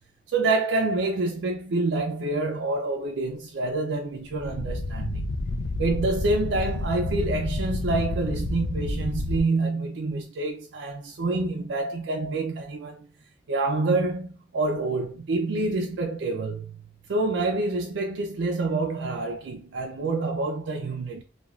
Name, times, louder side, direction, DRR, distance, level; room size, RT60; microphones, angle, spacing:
voice 1, 0.3-5.3 5.8-13.1 13.5-21.2, right 2 dB, 70° right, 0.4 m, -27 dB
sound 1, 4.2-9.4, left 2 dB, 75° left, 0.4 m, -30 dB
2.4 x 2.2 x 3.0 m
head